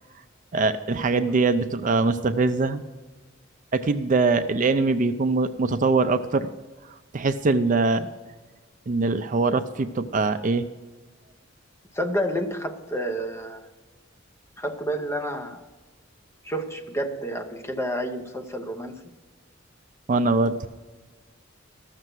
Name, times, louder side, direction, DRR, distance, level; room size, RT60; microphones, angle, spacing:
voice 1, 0.5-2.8 3.7-6.5 7.1-8.1 8.9-10.7 20.1-20.6, right 3 dB, 40° right, 10 dB, 0.4 m, -22 dB
voice 2, 11.9-13.7 14.6-15.6 16.4-19.0, equal, 15° left, 5 dB, 0.8 m, -29 dB
13.5 x 6.7 x 6.2 m, 1.3 s
head